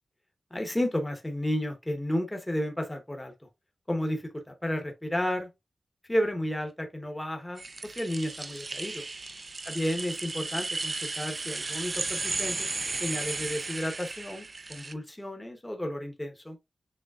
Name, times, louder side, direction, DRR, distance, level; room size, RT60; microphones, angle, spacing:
voice 1, 0.5-3.3 3.9-5.5 6.1-9.0 9.6-12.7 13.0-16.6, left 1 dB, 10° left, 0.8 m, -32 dB
sound 1, 7.6-14.9, right 3 dB, 40° right, 0.3 m, -35 dB
6.5 x 3.2 x 2.3 m
wide cardioid pair, 140°, 0 cm